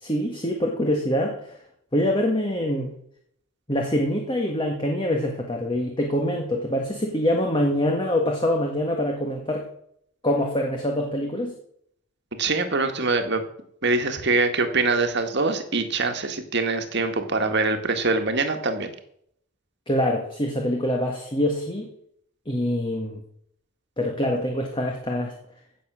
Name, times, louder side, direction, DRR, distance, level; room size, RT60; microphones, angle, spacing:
voice 1, 0.0-1.6 1.9-2.9 3.7-9.7 10.2-11.5 19.9-21.9 22.5-23.2 24.0-25.3, left 1 dB, 25° left, 1 dB, 1.8 m, -25 dB
voice 2, 12.4-13.4 13.8-18.9, right 3 dB, 55° right, 6 dB, 1.8 m, -24 dB
16.0 x 7.1 x 6.3 m, 0.68 s
head